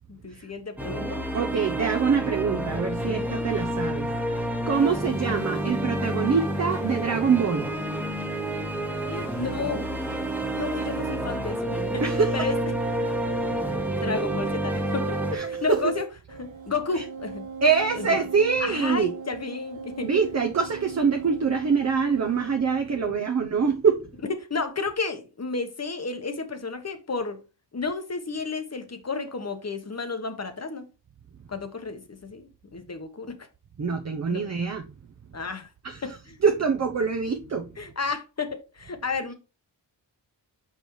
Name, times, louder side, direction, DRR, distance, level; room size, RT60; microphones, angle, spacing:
voice 1, 0.1-1.2 9.1-9.9 10.5-12.0 12.3-12.6 13.9-16.1 16.4-17.5 18.0-18.1 18.6-20.1 22.9-23.2 24.4-27.4 27.7-30.9 31.5-33.4 34.3-34.4 35.3-35.7 36.0-36.4 37.8-39.3, left 4 dB, 35° left, 1.1 m, -32 dB
sound 1, 0.8-15.4, equal, 5° right, 1.1 m, -29 dB
voice 2, 1.3-7.7 12.0-12.3 15.3-15.9 17.0-17.1 17.6-19.1 20.0-24.0 33.8-34.9 35.8-36.2 36.4-37.7, right 5 dB, 35° right, 0.7 m, -25 dB
sound 2, 4.7-11.4 11.7-16.0 16.3-22.5, right 5 dB, 90° right, 1.4 m, -37 dB
5.8 x 5.3 x 3.1 m
cardioid pair, 70°, 45 cm